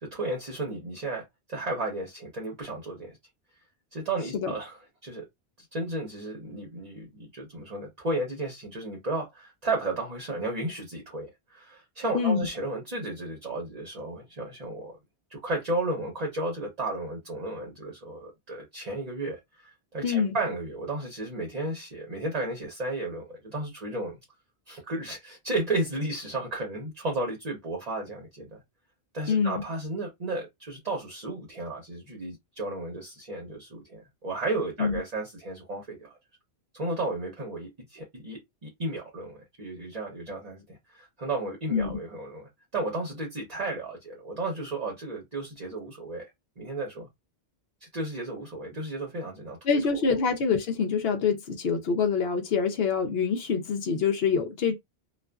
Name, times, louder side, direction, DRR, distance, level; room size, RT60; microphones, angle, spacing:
voice 1, 0.0-3.2 3.9-5.2 5.7-15.0 15.3-24.2 24.7-28.6 29.1-36.1 36.7-46.3 46.6-47.1 47.8-49.6 49.9-50.0, right 2 dB, 40° right, 0.9 m, -33 dB
voice 2, 12.1-12.4 20.0-20.4 29.3-29.6 34.8-34.9 41.7-42.0 49.7-54.7, left 5 dB, 70° left, 0.8 m, -25 dB
2.4 x 2.4 x 2.2 m
omnidirectional pair, 1.1 m